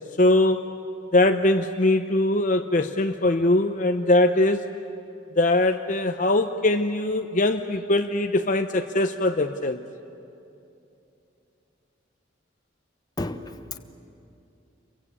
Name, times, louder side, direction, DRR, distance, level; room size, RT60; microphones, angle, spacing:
voice 1, 0.2-0.7 1.1-4.7 5.4-9.8, left 2 dB, 40° left, 0.7 m, -21 dB
voice 2, 13.2-13.8, left 2 dB, 20° left, 1.1 m, -32 dB
29.0 x 23.5 x 8.6 m
head